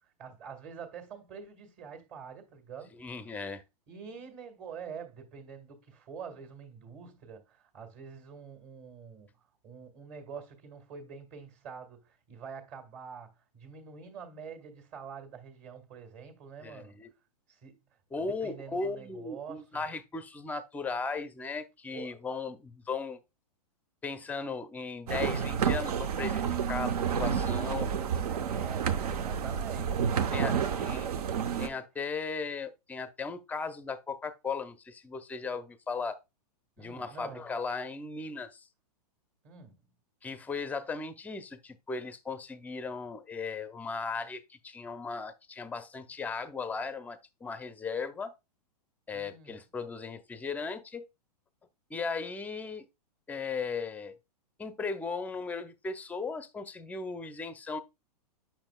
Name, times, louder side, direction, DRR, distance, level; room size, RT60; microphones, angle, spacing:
voice 1, 0.2-3.0 3.9-9.3 9.6-17.0 17.5-17.8 18.2-19.8 21.9-22.2 28.0-31.8 36.8-37.5 39.4-39.9 49.1-49.6, right 6 dB, 35° right, 1.8 m, -46 dB
voice 2, 2.9-3.6 16.6-17.1 18.1-23.2 24.0-27.9 30.3-31.1 31.6-36.2 36.8-38.7 40.2-48.3 49.1-51.0 51.9-52.9 53.3-54.2 54.6-57.8, left 4 dB, 10° left, 0.5 m, -37 dB
sound 1, 25.1-31.7, right 7 dB, 70° right, 0.8 m, -30 dB
8.7 x 5.8 x 2.2 m
hypercardioid pair, 130°, 20 cm